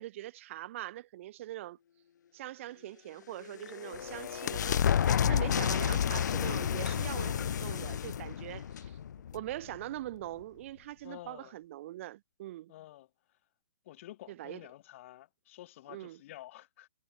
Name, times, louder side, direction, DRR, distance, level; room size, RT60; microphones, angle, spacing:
voice 1, 0.0-1.8 2.3-9.0 9.3-12.7 14.3-14.6 15.9-16.2, right 14 dB, 45° right, 0.7 m, -42 dB
sound 1, 3.3-9.8, left 8 dB, 75° left, 0.6 m, -31 dB
voice 2, 11.0-11.6 12.7-13.4 13.8-16.9, left 15 dB, 45° left, 1.2 m, -50 dB
hypercardioid pair, 150°, 10 cm